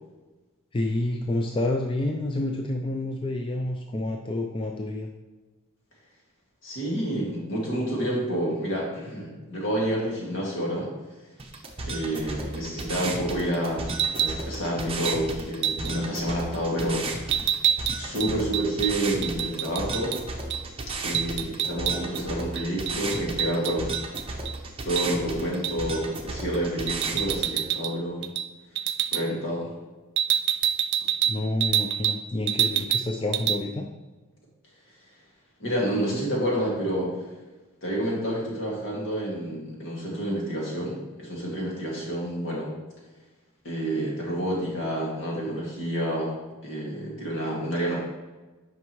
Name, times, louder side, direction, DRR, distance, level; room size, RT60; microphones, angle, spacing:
voice 1, 0.7-5.1 31.3-33.9, left 2 dB, 25° left, 2 dB, 0.4 m, -28 dB
voice 2, 6.6-10.9 11.8-17.5 18.0-20.2 21.0-23.9 24.8-28.3 29.1-29.7 31.0-31.1 35.6-37.2 37.8-42.7 43.6-46.4 46.6-48.0, right 1 dB, 60° left, -3 dB, 2.1 m, -29 dB
sound 1, 11.4-27.4, right 2 dB, 25° right, 0.7 m, -35 dB
sound 2, 13.9-14.4 15.1-15.2 15.6-15.9 17.3-20.2 20.5-20.6 20.9-22.2 22.6-24.5 25.0-25.1 25.6-25.9 26.9-27.9 28.2-28.5 28.8-29.2 30.2-32.2 32.5-33.1 33.3-33.6, right 10 dB, 50° right, 0.4 m, -26 dB
9.4 x 5.3 x 3.1 m, 1.2 s
head